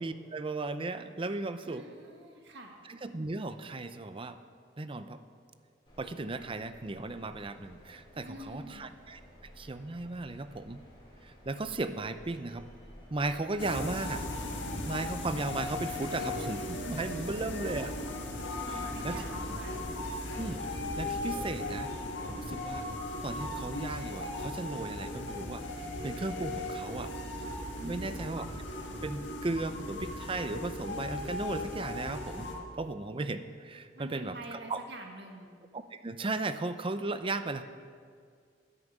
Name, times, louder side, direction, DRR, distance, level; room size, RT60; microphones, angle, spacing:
voice 1, 0.0-1.9 2.9-4.4 4.8-5.2 6.0-10.8 11.2-12.7 13.1-14.3 14.8-17.9 18.7-19.2 20.4-21.9 22.2-22.9 23.2-25.6 26.0-27.1 27.8-28.5 29.0-34.8 35.7-37.6, right 2 dB, 30° right, 11 dB, 0.6 m, -36 dB
voice 2, 1.6-2.8 8.2-8.8 17.2-17.8 18.6-19.7 27.8-28.3 33.9-35.5, right 1 dB, 70° right, 2 dB, 1.8 m, -46 dB
sound 1, 5.9-20.9, equal, 30° left, 4.3 m, -55 dB
sound 2, 13.6-32.5, left 2 dB, 85° left, 1.7 m, -37 dB
10.5 x 9.9 x 7.3 m, 2.1 s
head